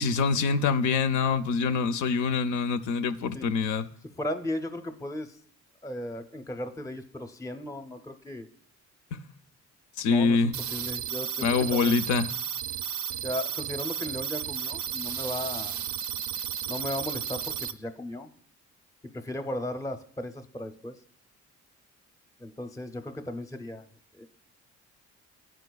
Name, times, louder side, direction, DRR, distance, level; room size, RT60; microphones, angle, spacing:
voice 1, 0.0-3.9 10.0-10.5 11.4-12.3, left 5 dB, 75° left, 0.5 m, -25 dB
voice 2, 4.2-5.3 5.8-8.5 10.0-11.9 13.2-15.8 16.7-18.3 19.1-20.9 22.4-23.8 24.1-24.3, left 1 dB, 10° left, 0.5 m, -36 dB
sound 1, 10.5-17.7, right 9 dB, 65° right, 0.4 m, -33 dB
12.0 x 4.5 x 2.3 m
cardioid pair, 90°, 30 cm